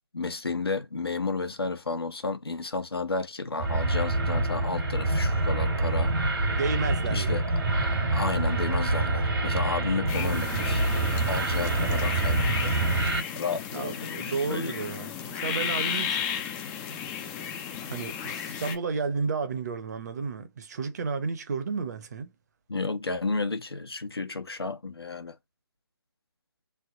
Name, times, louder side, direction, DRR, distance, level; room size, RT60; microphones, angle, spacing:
voice 1, 0.1-6.1 7.1-7.4 7.7-12.7 13.4-14.8 22.7-25.4, left 4 dB, 90° left, 0.9 m, -32 dB
sound 1, 3.6-13.2, right 2 dB, 70° right, 1.5 m, -26 dB
voice 2, 6.5-7.3 13.7-16.2 17.8-22.3, right 4 dB, 45° right, 0.8 m, -32 dB
sound 2, 10.1-18.8, left 8 dB, 10° left, 0.4 m, -34 dB
3.4 x 2.2 x 3.8 m
figure-of-eight pair, 150°, 12 cm